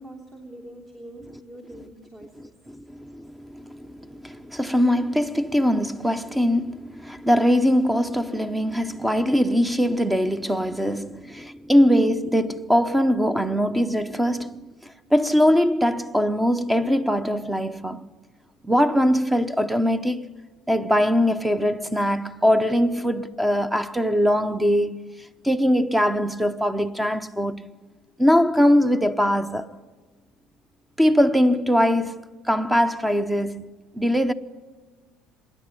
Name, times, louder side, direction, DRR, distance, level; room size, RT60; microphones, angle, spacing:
voice 1, 0.0-2.5, right 1 dB, 35° right, 3.0 m, -43 dB
voice 2, 2.7-14.6 15.1-18.0 18.6-20.2 20.7-25.1 25.4-27.6 28.2-29.7 31.0-32.2 32.5-34.3, equal, 10° right, 0.9 m, -21 dB
25.5 x 10.5 x 9.9 m
supercardioid pair, 75°, 0 cm